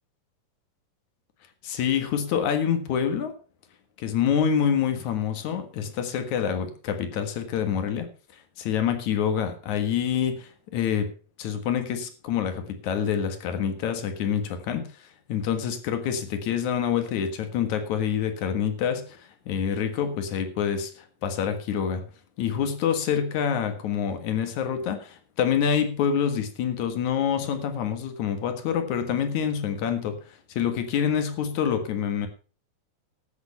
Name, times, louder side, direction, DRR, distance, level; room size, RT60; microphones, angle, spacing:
voice 1, 1.6-3.3 4.0-8.1 8.6-11.1 11.4-14.9 15.3-22.0 22.4-32.3, left 8 dB, 65° left, 8 dB, 2.8 m, -26 dB
13.0 x 8.1 x 5.6 m, 0.39 s
omnidirectional pair, 3.9 m